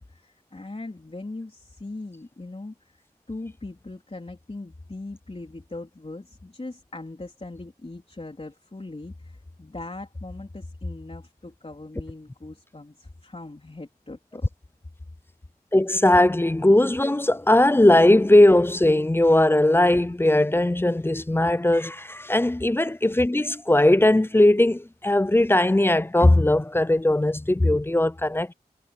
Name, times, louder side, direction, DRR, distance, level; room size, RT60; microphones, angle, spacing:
voice 1, 0.1-14.5, left 2 dB, 35° left, 3.7 m, -39 dB
voice 2, 15.7-28.5, left 1 dB, 15° left, 0.5 m, -19 dB
cardioid pair, 50°, 16 cm